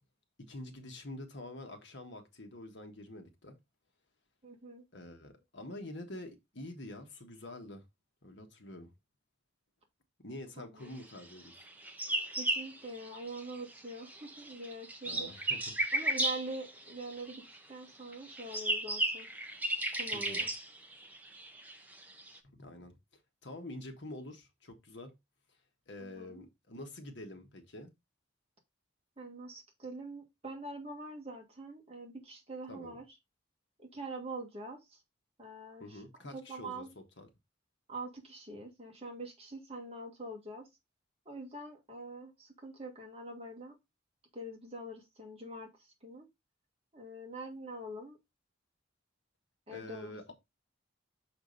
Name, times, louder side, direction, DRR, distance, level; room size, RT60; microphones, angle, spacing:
voice 1, 0.5-3.5 4.9-7.8 8.2-8.9 10.2-11.5 15.0-15.6 20.1-20.5 22.4-22.9 23.4-25.1 25.9-27.9 32.7-33.0 35.8-37.3 49.7-50.3, left 1 dB, 60° left, 1.4 m, -46 dB
voice 2, 4.4-4.8 10.6-11.0 12.4-15.3 15.9-17.4 17.7-19.3 19.9-20.5 26.0-26.4 29.2-33.0 33.8-35.0 35.4-36.0 36.3-36.9 37.9-40.7 41.2-43.7 44.3-45.7 46.0-46.3 46.9-48.2 49.7-50.3, right 2 dB, 30° right, 1.7 m, -44 dB
sound 1, 11.5-13.7 14.0-17.6 18.1-22.4, right 1 dB, 10° right, 0.8 m, -35 dB
6.3 x 5.1 x 3.9 m
head